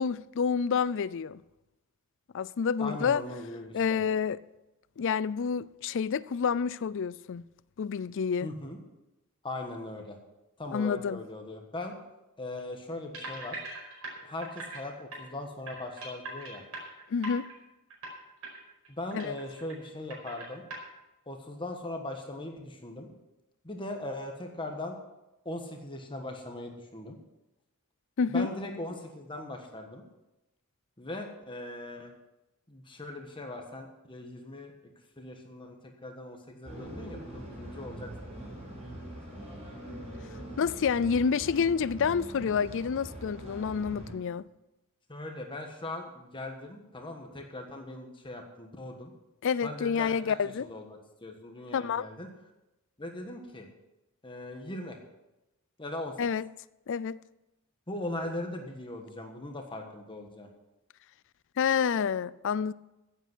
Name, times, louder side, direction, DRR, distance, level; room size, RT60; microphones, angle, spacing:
voice 1, 0.0-1.4 2.3-3.2 3.7-4.4 5.0-7.4 7.8-8.5 10.7-11.2 17.1-17.5 19.1-19.3 28.2-28.5 40.6-44.4 49.4-50.7 51.7-52.1 56.2-56.5 56.9-57.2 61.6-62.7, left 6 dB, 60° left, 0.4 m, -28 dB
voice 2, 2.8-4.0 8.4-8.8 9.4-10.2 10.6-11.9 12.4-13.6 14.2-16.6 18.9-20.6 21.3-23.1 23.6-25.0 25.4-27.2 28.3-30.0 31.0-32.1 32.7-34.7 35.2-38.4 45.1-49.1 49.6-50.3 50.7-52.3 53.0-53.7 54.2-55.0 55.8-56.2 57.9-60.5, left 1 dB, 25° left, 1.4 m, -39 dB
sound 1, 13.1-14.8 15.1-15.2 15.7-17.5 17.9-18.1 18.4-18.6 18.8-19.8 20.1-20.8, right 2 dB, 85° right, 4.9 m, -41 dB
sound 2, 36.6-44.1, right 1 dB, 30° right, 5.9 m, -43 dB
15.5 x 8.1 x 6.1 m
head